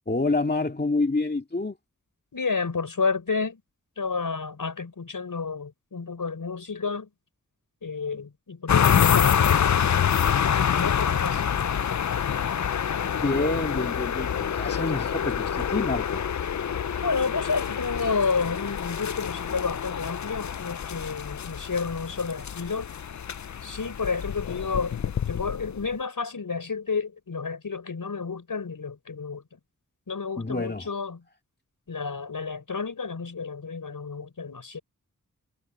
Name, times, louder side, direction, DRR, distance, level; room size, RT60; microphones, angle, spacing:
voice 1, 0.1-1.8 13.2-16.3 30.4-30.9, left 2 dB, 30° left, 2.2 m, -27 dB
voice 2, 2.3-3.6 4.0-7.1 7.8-9.6 10.7-11.5 17.0-22.9 23.6-25.0 25.3-29.4 30.1-31.2 31.9-34.8, left 5 dB, 80° left, 5.3 m, -30 dB
sound 1, 8.7-25.9, left 8 dB, 60° left, 0.6 m, -26 dB
wide cardioid pair, 60°, 32 cm